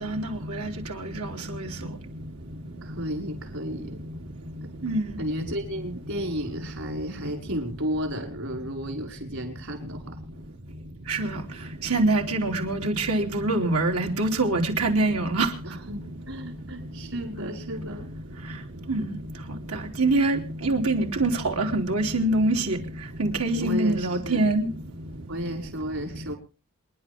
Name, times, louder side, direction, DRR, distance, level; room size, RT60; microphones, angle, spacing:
voice 1, 2.8-4.0 5.2-10.2 15.6-18.1 23.6-24.5 25.3-26.4, equal, 65° right, 5.3 m, -33 dB
voice 2, 4.8-5.1 11.1-11.3 11.9-15.5 18.9-19.1 20.0-22.8 23.2-24.7, right 2 dB, 85° right, 3.3 m, -24 dB
28.0 x 10.5 x 3.6 m
head